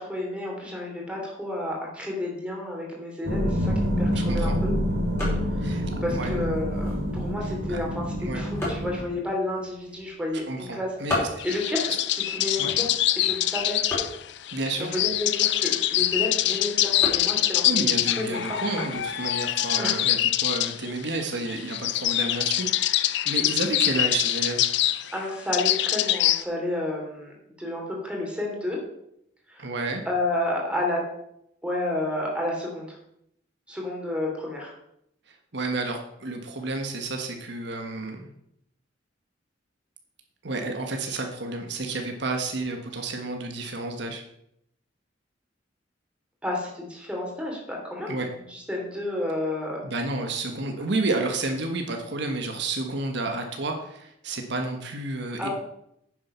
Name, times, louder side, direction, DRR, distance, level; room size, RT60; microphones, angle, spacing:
voice 1, 0.0-4.7 5.6-10.9 11.4-12.9 13.2-13.8 14.8-18.6 19.8-20.0 25.1-28.8 29.5-29.7 30.0-31.0 31.6-32.9 33.7-34.7 46.4-48.2 48.5-49.8 55.4-55.5, left 1 dB, 5° right, -1 dB, 3.1 m, -31 dB
sound 1, 3.2-9.0, equal, 85° right, 2.5 m, -27 dB
sound 2, 3.7-19.2, left 1 dB, 15° left, 5.0 m, -38 dB
voice 2, 4.1-4.6 5.6-6.4 7.7-7.8 8.2-8.4 10.5-11.2 12.6-12.7 14.5-14.9 17.6-23.0 23.2-24.7 29.6-30.0 35.3-38.3 40.4-44.2 48.1-48.3 49.8-55.5, right 2 dB, 65° right, 3 dB, 1.4 m, -31 dB
sound 3, 11.4-26.4, left 13 dB, 65° left, 0.5 m, -25 dB
9.8 x 7.6 x 5.7 m, 0.77 s
head